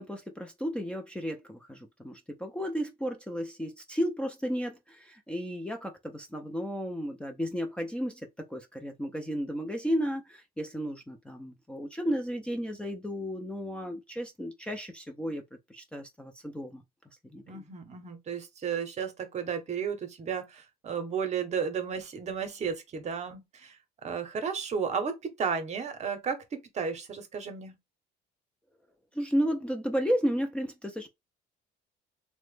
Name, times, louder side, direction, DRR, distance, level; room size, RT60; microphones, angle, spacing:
voice 1, 0.0-15.4 15.7-16.8 17.3-17.7 29.1-31.1, equal, 5° left, 0.4 m, -33 dB
voice 2, 17.5-23.8 24.0-27.7, right 6 dB, 40° right, 0.8 m, -33 dB
2.9 x 2.1 x 3.2 m
cardioid pair, 110°, 17 cm